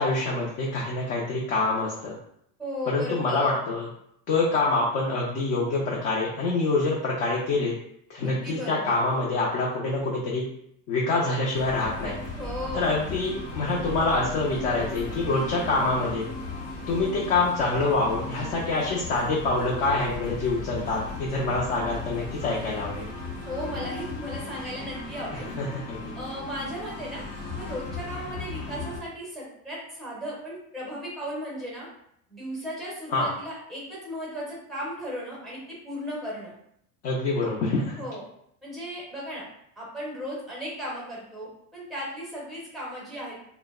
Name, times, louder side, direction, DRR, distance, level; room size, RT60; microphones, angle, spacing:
voice 1, 0.0-2.1 2.9-3.9 4.3-7.7 8.1-10.5 10.9-12.2 12.7-16.3 16.9-23.1 25.6-26.1 33.1-33.3 37.0-38.0, left 3 dB, 40° left, -4 dB, 0.4 m, -26 dB
voice 2, 2.6-3.6 8.2-9.0 12.4-13.1 23.5-25.5 26.1-27.2 27.5-31.9 32.3-36.5 38.0-38.2 38.6-39.4 39.8-43.5, equal, ahead, -5 dB, 0.6 m, -36 dB
sound 1, 11.5-29.0, left 3 dB, 85° left, 0.8 m, -36 dB
2.7 x 2.0 x 2.3 m, 0.73 s
cardioid pair, 150°, 36 cm